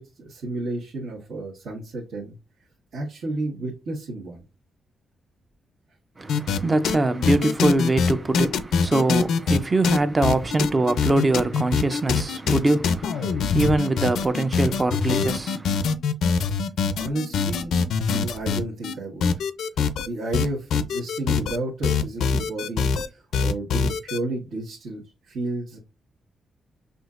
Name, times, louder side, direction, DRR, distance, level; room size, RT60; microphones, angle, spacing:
voice 1, 0.0-2.3 2.9-4.4 16.9-17.7 18.1-19.3 20.0-25.8, right 2 dB, 65° right, 1.3 m, -32 dB
voice 2, 6.2-15.9, right 2 dB, 20° right, 0.5 m, -23 dB
sound 1, 6.3-6.6 6.8-7.0 7.2-9.6 9.8-18.9 19.2-20.1 20.3-21.6 21.8-23.1 23.3-24.2, left 5 dB, 85° left, 0.4 m, -23 dB
6.0 x 2.7 x 2.4 m
wide cardioid pair, 155°, 0 cm